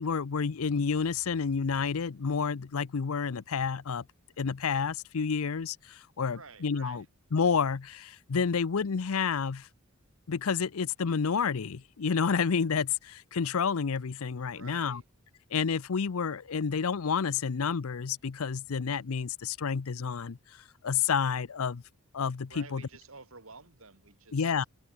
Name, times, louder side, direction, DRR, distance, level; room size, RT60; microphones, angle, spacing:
voice 1, 0.0-4.0 4.4-7.0 7.3-9.7 10.3-15.0 15.5-20.4 20.8-21.8 22.1-22.8 24.3-24.6, left 6 dB, 75° left, 0.6 m, -29 dB
voice 2, 6.3-7.1 14.4-15.0 22.5-24.7, right 4 dB, 65° right, 3.6 m, -51 dB
head